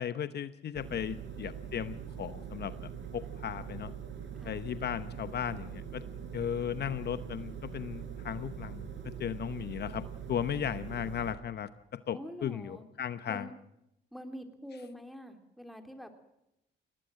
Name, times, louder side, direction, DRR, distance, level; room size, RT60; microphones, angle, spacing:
voice 1, 0.0-3.9 4.4-6.0 6.3-13.5, left 9 dB, 55° left, 12 dB, 0.9 m, -36 dB
sound 1, 0.7-11.3, right 8 dB, 65° right, 5.4 m, -43 dB
voice 2, 12.1-12.8 13.3-13.5 14.1-16.1, equal, ahead, 6 dB, 3.3 m, -45 dB
21.0 x 18.5 x 7.6 m, 0.86 s
cardioid pair, 90°, 20 cm